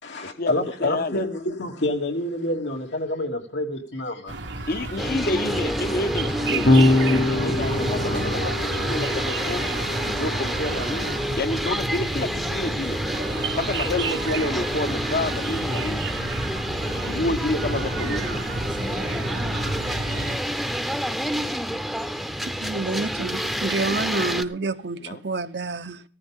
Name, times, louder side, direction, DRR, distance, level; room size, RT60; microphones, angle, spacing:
voice 1, 0.0-4.4, left 1 dB, 90° left, 2.9 m, -27 dB
voice 2, 0.8-1.2 4.7-9.7 10.0-13.0 13.6-16.1 17.1-18.4 23.2-24.6 25.0-25.2, left 2 dB, 55° left, 1.0 m, -29 dB
sound 1, 4.3-20.4, right 2 dB, 85° right, 1.5 m, -31 dB
sound 2, 5.0-24.4, equal, ahead, 0.7 m, -29 dB
Electric guitar / Bass guitar, 6.7-13.1, left 2 dB, 75° left, 1.4 m, -25 dB
voice 3, 22.4-26.0, right 3 dB, 70° right, 0.9 m, -28 dB
15.0 x 14.0 x 3.7 m
head